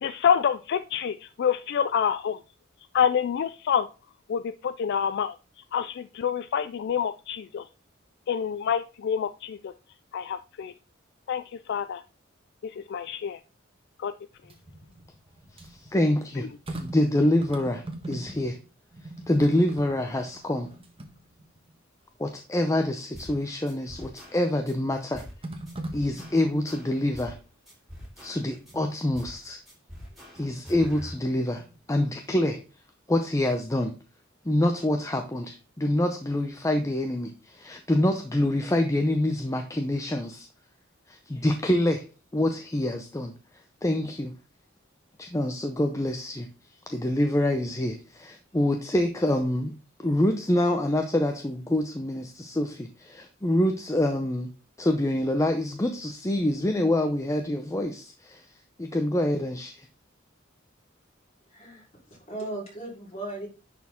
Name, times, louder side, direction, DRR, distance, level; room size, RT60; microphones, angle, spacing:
voice 1, 0.0-2.4 2.9-3.9 4.3-5.3 5.7-7.6 8.3-9.7 10.1-10.7 11.3-12.0 12.6-13.4 14.0-14.1, left 8 dB, 60° left, 12 dB, 0.3 m, -27 dB
sound 1, 14.3-18.7 18.9-21.7 22.3-22.4 24.0-24.5 25.4-26.9 28.6-29.0 29.9-30.6 31.0-32.0 32.3-32.4, right 1 dB, 30° right, 1.3 m, -42 dB
voice 2, 15.6-16.5 16.8-18.6 19.3-20.7 22.2-25.2 25.9-27.4 28.2-29.6 30.3-31.6 31.9-32.6 33.1-33.9 34.4-40.5 41.1-42.0 42.3-43.3 43.8-44.3 45.2-46.5 46.9-49.7 50.0-54.5 54.8-58.5 58.8-59.9, left 1 dB, 15° left, 5 dB, 0.6 m, -26 dB
sound 2, 23.1-23.4 23.7-24.7 25.1-25.4 25.7-27.4 27.7-28.7 29.1-29.4 29.7-31.1, equal, ahead, 2.8 m, -44 dB
voice 3, 61.5-61.9 62.3-63.5, right 2 dB, 30° left, -3 dB, 3.9 m, -36 dB
10.5 x 4.4 x 3.6 m, 0.34 s
head